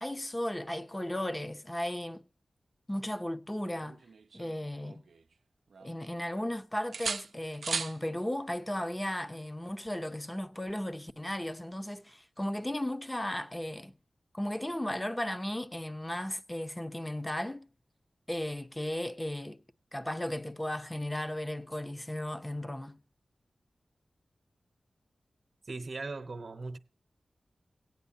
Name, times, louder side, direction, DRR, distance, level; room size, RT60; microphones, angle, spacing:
voice 1, 0.0-2.2 2.9-4.0 4.3-5.0 5.8-13.9 14.3-17.7 18.3-19.6 19.9-23.0, left 1 dB, 15° left, 0.8 m, -35 dB
sound 1, 3.8-5.3 5.7-6.5 6.9-8.0 9.9-10.1, right 5 dB, 80° right, 0.5 m, -38 dB
voice 2, 25.6-26.8, right 3 dB, 55° right, 1.0 m, -39 dB
17.5 x 9.3 x 2.8 m
cardioid pair, 60°, 0 cm